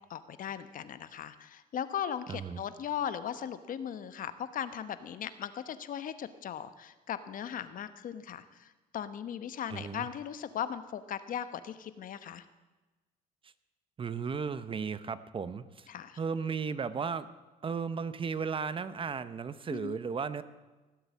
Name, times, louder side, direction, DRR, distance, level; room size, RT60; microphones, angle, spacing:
voice 1, 0.1-12.4 15.9-16.2 19.7-20.0, left 9 dB, 55° left, 12 dB, 1.0 m, -38 dB
voice 2, 2.3-2.6 9.7-10.1 13.4-13.5 14.0-15.9 16.2-17.3 17.6-20.4, right 5 dB, 30° right, 14 dB, 0.7 m, -35 dB
18.0 x 8.1 x 8.3 m, 1.2 s
cardioid pair, 110°, 17 cm